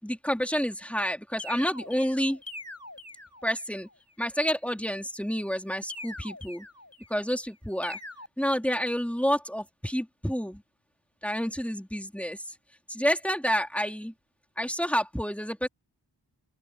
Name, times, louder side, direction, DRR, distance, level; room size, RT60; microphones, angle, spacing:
voice 1, 0.0-2.4 3.4-3.9 4.2-6.7 7.1-8.0 8.4-10.6 11.2-12.6 12.9-14.1 14.6-15.7, equal, 5° left, 3.7 m, -29 dB
sound 1, 1.4-3.8 5.9-7.3 7.8-8.3, left 2 dB, 35° left, 5.3 m, -43 dB
open air
wide cardioid pair, 45°, 43 cm